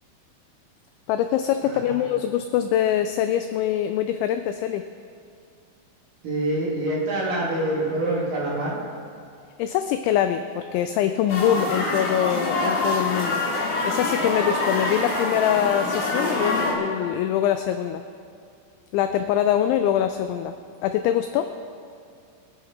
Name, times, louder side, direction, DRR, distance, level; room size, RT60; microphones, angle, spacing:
voice 1, 1.1-4.8 9.6-13.4 13.8-18.0 18.9-20.5 20.8-21.5, left 10 dB, 90° left, 9 dB, 2.6 m, -23 dB
voice 2, 1.6-2.0 6.2-8.8, right 1 dB, 55° right, -4 dB, 2.9 m, -26 dB
sound 1, 11.3-16.7, left 2 dB, 55° left, 3.3 m, -25 dB
23.0 x 10.5 x 3.6 m, 2.3 s
omnidirectional pair, 5.8 m